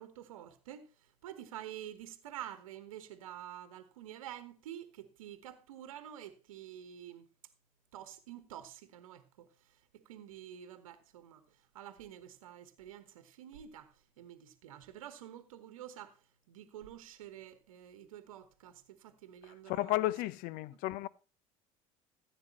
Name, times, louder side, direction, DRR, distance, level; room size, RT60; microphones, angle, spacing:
voice 1, 0.0-7.3 7.9-16.2 16.5-20.0, right 11 dB, 70° right, 1.2 m, -49 dB
voice 2, 19.4-21.1, left 17 dB, 55° left, 0.7 m, -33 dB
14.5 x 8.0 x 4.4 m
figure-of-eight pair, 65°, 18 cm